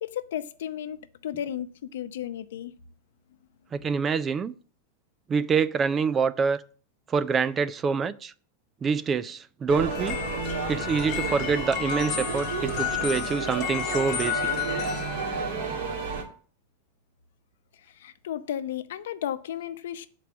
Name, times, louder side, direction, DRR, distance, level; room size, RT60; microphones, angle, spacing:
voice 1, 0.0-2.7 17.9-20.1, left 10 dB, 80° left, 0.7 m, -34 dB
voice 2, 3.7-4.5 5.3-6.6 7.1-8.3 8.8-10.2 10.7-14.4, right 5 dB, 20° right, 0.3 m, -26 dB
sound 1, 9.7-16.2, right 5 dB, 80° right, 2.2 m, -32 dB
sound 2, 9.9-16.2, left 12 dB, 30° left, 1.1 m, -32 dB
7.4 x 4.6 x 7.0 m
supercardioid pair, 160°, 0 cm